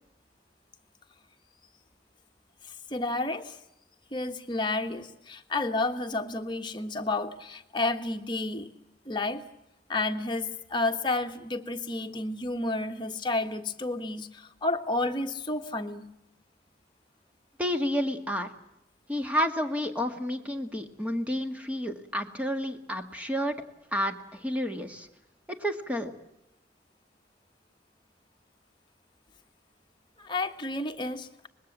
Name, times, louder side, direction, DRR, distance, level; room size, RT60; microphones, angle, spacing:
voice 1, 2.6-3.6 4.1-8.7 9.0-9.4 9.9-16.1 30.2-31.5, left 2 dB, 25° left, 5 dB, 1.5 m, -31 dB
voice 2, 17.6-18.5 19.1-23.5 23.9-25.1 25.5-26.1, equal, 10° right, 5 dB, 1.9 m, -30 dB
25.0 x 21.0 x 7.4 m, 0.86 s
head